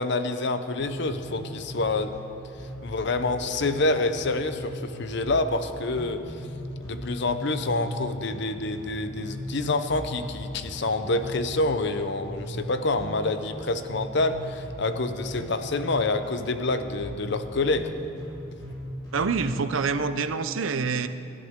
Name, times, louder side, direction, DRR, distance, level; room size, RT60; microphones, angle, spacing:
voice 1, 0.0-2.1 2.8-6.3 6.8-17.9, left 2 dB, 60° left, 9 dB, 0.7 m, -27 dB
sound 1, 0.8-19.6, equal, 25° left, 4.3 m, -39 dB
voice 2, 19.1-21.1, right 5 dB, 85° right, 10 dB, 0.7 m, -26 dB
23.5 x 12.0 x 3.7 m, 2.7 s
head